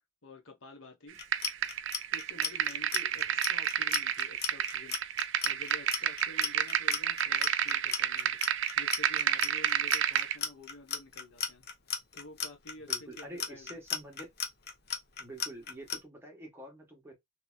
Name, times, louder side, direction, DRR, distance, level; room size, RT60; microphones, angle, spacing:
voice 1, 0.2-1.2 2.1-11.7 12.1-13.7, left 2 dB, 75° left, 1.1 m, -50 dB
Clock, 1.1-16.0, left 7 dB, 55° left, 0.7 m, -35 dB
sound 1, 1.3-10.4, right 9 dB, 65° right, 0.4 m, -30 dB
voice 2, 12.9-14.3 15.2-17.1, right 1 dB, 10° right, 1.0 m, -47 dB
3.0 x 2.7 x 2.2 m
head